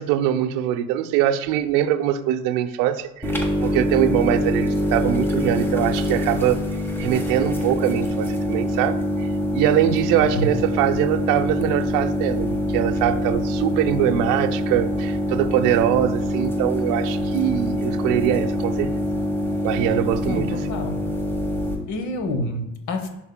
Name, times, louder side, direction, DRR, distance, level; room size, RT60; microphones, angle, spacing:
voice 1, 0.0-3.4 3.6-6.6 7.0-18.9 19.6-20.6, right 11 dB, 55° right, 9 dB, 0.7 m, -22 dB
sound 1, 3.2-21.8, left 1 dB, 5° left, 1.4 m, -24 dB
voice 2, 20.2-21.0 21.6-23.1, left 1 dB, 50° left, 6 dB, 1.2 m, -28 dB
11.0 x 3.9 x 2.2 m, 0.91 s
hypercardioid pair, 70°, 39 cm